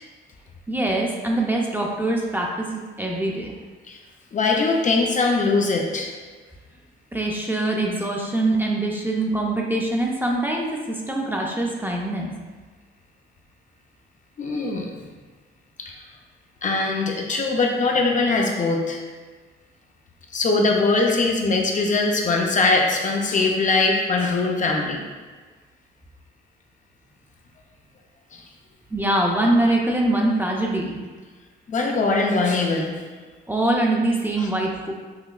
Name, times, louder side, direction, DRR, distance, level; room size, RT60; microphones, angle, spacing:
voice 1, 0.7-3.5 7.1-12.3 28.9-31.0 33.5-34.9, right 1 dB, 10° right, -1 dB, 0.4 m, -23 dB
voice 2, 4.3-6.1 14.4-14.9 15.8-16.0 16.6-19.0 20.3-25.0 28.3-28.4 31.7-33.0 34.4-34.5, left 3 dB, 40° left, 1 dB, 0.5 m, -21 dB
5.6 x 2.2 x 2.3 m, 1.4 s
cardioid pair, 90°, 20 cm